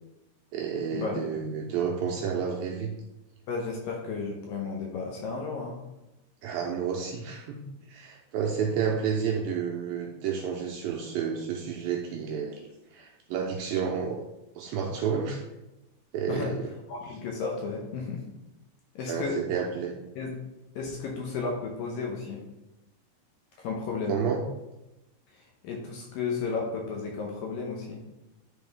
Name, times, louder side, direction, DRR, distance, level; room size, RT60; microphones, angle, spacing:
voice 1, 0.5-2.9 6.4-7.6 7.9-14.2 14.6-15.4 16.1-16.7 19.1-19.9 24.1-24.4, right 7 dB, 80° right, 0 dB, 2.2 m, -30 dB
voice 2, 3.5-5.8 16.3-16.5 16.9-18.2 19.0-19.4 20.2-20.4 20.8-22.4 23.6-24.2 25.4-28.0, left 4 dB, 75° left, 0 dB, 2.2 m, -33 dB
10.5 x 4.1 x 3.6 m, 0.97 s
omnidirectional pair, 4.8 m